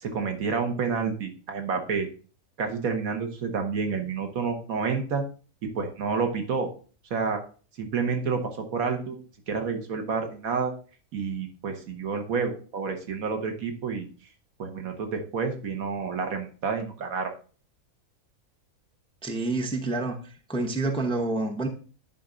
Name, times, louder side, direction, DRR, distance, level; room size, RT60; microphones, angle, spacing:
voice 1, 0.0-2.1 2.6-5.2 5.6-6.7 7.1-7.4 7.8-9.2 9.5-10.7 11.1-14.1 14.6-17.3, right 5 dB, 80° right, 5 dB, 1.6 m, -29 dB
voice 2, 19.2-20.2 20.5-21.7, right 2 dB, 5° left, 3 dB, 0.5 m, -28 dB
10.0 x 4.2 x 3.7 m, 0.39 s
omnidirectional pair, 1.5 m